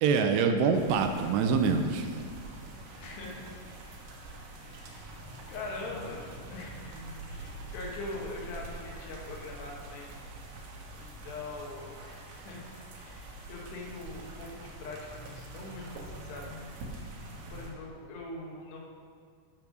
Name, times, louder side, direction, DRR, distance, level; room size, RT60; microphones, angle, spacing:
voice 1, 0.0-2.2, right 5 dB, 80° right, 6 dB, 2.7 m, -25 dB
sound 1, 0.7-17.7, right 2 dB, 65° right, 2.5 m, -45 dB
voice 2, 3.0-3.6 4.6-7.0 7.3-10.2 10.9-12.7 13.0-16.6 16.9-18.8, left 2 dB, 75° left, -2 dB, 3.6 m, -43 dB
12.0 x 5.7 x 6.3 m, 2.1 s
omnidirectional pair, 5.0 m